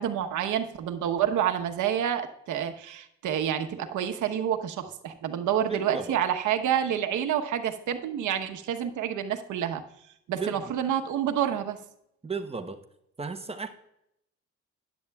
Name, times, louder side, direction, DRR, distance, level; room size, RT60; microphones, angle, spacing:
voice 1, 0.0-9.8 10.3-11.8, right 9 dB, 80° right, 6 dB, 1.0 m, -28 dB
voice 2, 5.7-6.2 10.3-10.7 12.2-12.8 13.2-13.7, right 4 dB, 20° right, 7 dB, 0.9 m, -34 dB
13.0 x 10.5 x 2.3 m, 0.77 s
cardioid pair, 90°, 30 cm